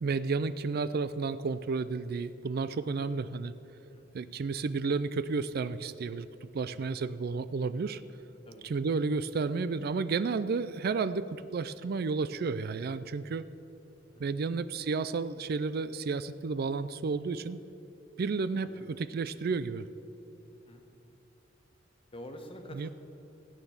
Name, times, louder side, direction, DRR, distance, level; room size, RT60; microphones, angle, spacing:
voice 1, 0.0-3.5 4.1-6.3 6.5-8.0 8.6-13.4 14.2-17.6 18.2-19.9 22.8-22.9, right 4 dB, 55° right, 14 dB, 0.4 m, -32 dB
voice 2, 2.6-3.0 3.9-4.1 8.5-8.7 14.1-14.5 18.6-18.8 20.5-20.9 22.1-22.9, equal, 30° left, 4 dB, 1.4 m, -48 dB
15.0 x 9.0 x 7.2 m, 2.8 s
head